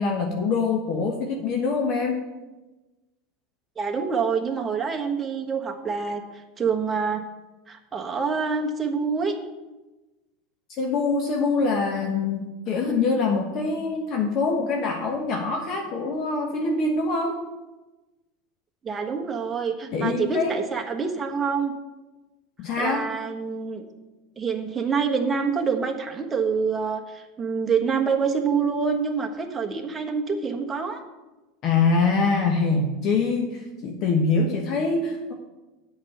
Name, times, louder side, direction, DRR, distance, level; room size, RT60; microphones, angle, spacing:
voice 1, 0.0-2.3 10.8-17.4 19.9-20.6 22.6-23.0 31.6-35.3, left 4 dB, 50° left, 2 dB, 1.1 m, -24 dB
voice 2, 3.8-6.2 6.6-7.2 7.7-9.3 18.8-21.7 22.8-23.8 24.4-31.0, right 5 dB, 20° right, 3 dB, 1.2 m, -26 dB
7.9 x 5.5 x 7.7 m, 1.1 s
supercardioid pair, 125°, 0 cm